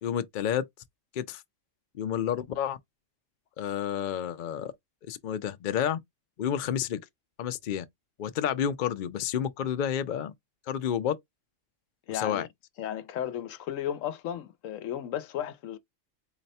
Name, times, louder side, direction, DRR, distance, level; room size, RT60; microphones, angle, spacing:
voice 1, 0.0-0.6 1.1-1.4 1.9-2.8 3.6-4.7 5.0-6.0 6.4-7.0 7.4-7.8 8.2-10.3 10.7-11.2 12.1-12.5, left 9 dB, 55° left, 0.5 m, -30 dB
voice 2, 12.1-12.5 12.8-15.8, left 10 dB, 80° left, 1.0 m, -34 dB
4.0 x 2.1 x 4.1 m
omnidirectional pair, 1.4 m